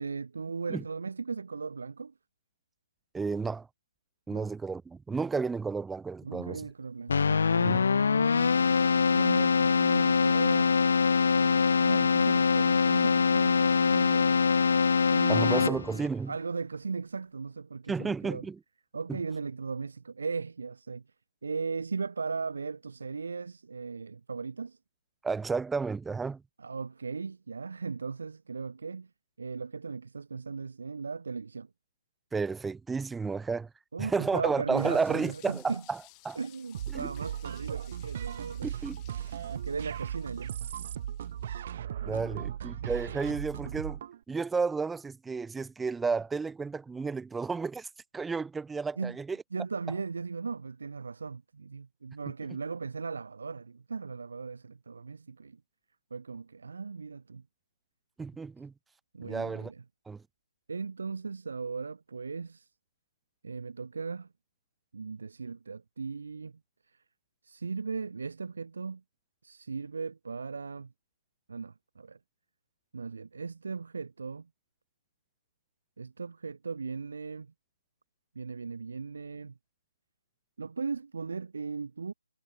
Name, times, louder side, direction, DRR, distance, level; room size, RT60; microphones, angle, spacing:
voice 1, 0.0-2.1 4.3-4.5 6.2-10.8 11.3-14.5 15.1-15.8 16.3-18.5 18.9-21.0 21.4-24.8 26.6-29.1 29.4-31.7 33.9-35.8 36.4-38.7 39.5-40.5 42.1-42.5 42.8-42.9 49.0-49.2 49.5-55.6 56.1-57.4 59.1-59.8 60.7-62.7 63.4-64.3 64.9-66.5 66.9-67.0 67.4-69.0 69.4-70.9 71.5-72.2 72.9-74.5 76.0-77.5 78.4-79.5 80.6-82.1, right 4 dB, 65° right, 3.6 m, -37 dB
voice 2, 3.1-3.7 4.3-6.6 7.6-7.8 15.3-16.3 17.9-18.6 19.1-19.2 25.2-26.4 32.3-33.7 34.0-36.0 36.2-36.4 36.9-37.1 38.6-39.0 42.0-44.0 44.3-47.9 48.1-49.4 58.2-58.7 59.2-59.7 60.1-60.2, right 4 dB, 5° right, 0.7 m, -32 dB
Keyboard (musical), 7.1-16.1, left 5 dB, 55° left, 0.4 m, -24 dB
sound 1, 34.8-41.6, left 40 dB or more, 20° left, 4.4 m, -58 dB
sound 2, 36.7-44.2, right 10 dB, 35° right, 0.4 m, -37 dB
hypercardioid pair, 165°, 0 cm